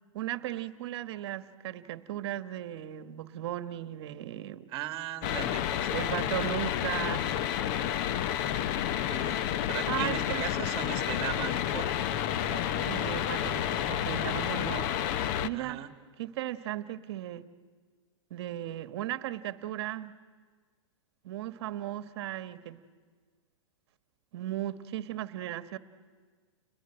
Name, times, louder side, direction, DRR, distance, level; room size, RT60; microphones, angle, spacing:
voice 1, 0.1-4.7 5.9-7.4 9.9-10.4 12.8-15.0 15.4-15.8 16.2-17.5 18.3-20.1 21.2-22.8 24.3-25.8, right 13 dB, 55° right, 12 dB, 1.3 m, -36 dB
voice 2, 4.7-6.3 9.1-12.9 15.5-15.9, right 12 dB, 35° right, 8 dB, 1.8 m, -39 dB
sound 1, 5.2-15.5, left 10 dB, 40° left, 0.9 m, -30 dB
29.5 x 21.0 x 8.9 m, 1.5 s
hypercardioid pair, 140°, 16 cm